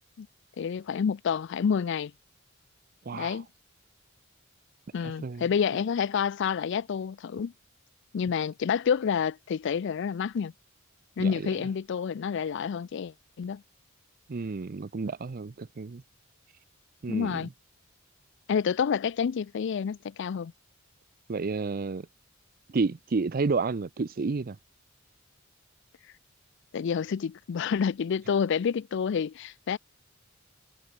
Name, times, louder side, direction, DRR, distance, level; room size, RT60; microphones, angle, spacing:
voice 1, 0.6-2.1 3.1-3.5 4.9-7.5 8.1-10.5 11.2-13.6 17.1-17.5 18.5-20.5 26.7-29.8, left 7 dB, 60° left, 0.4 m, -28 dB
voice 2, 3.1-3.4 5.2-5.4 11.2-11.5 14.3-16.0 17.0-17.5 21.3-22.1 22.7-24.6, right 4 dB, 45° right, 0.5 m, -30 dB
head